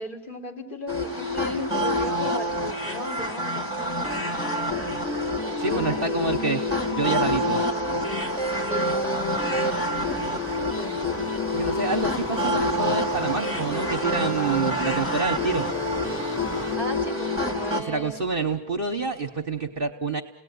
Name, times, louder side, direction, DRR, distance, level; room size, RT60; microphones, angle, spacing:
voice 1, 0.0-4.8 5.6-6.4 8.7-9.5 10.3-11.2 16.7-18.2, left 1 dB, 30° left, 1 dB, 4.2 m, -37 dB
sound 1, 0.9-17.8, left 1 dB, 10° left, 2.6 m, -27 dB
voice 2, 5.6-6.6 6.9-7.7 11.5-15.7 17.8-20.2, right 4 dB, 40° right, 5 dB, 1.3 m, -27 dB
sound 2, 8.0-16.8, right 2 dB, 10° right, 1.5 m, -41 dB
29.5 x 19.0 x 9.5 m, 0.88 s
omnidirectional pair, 1.6 m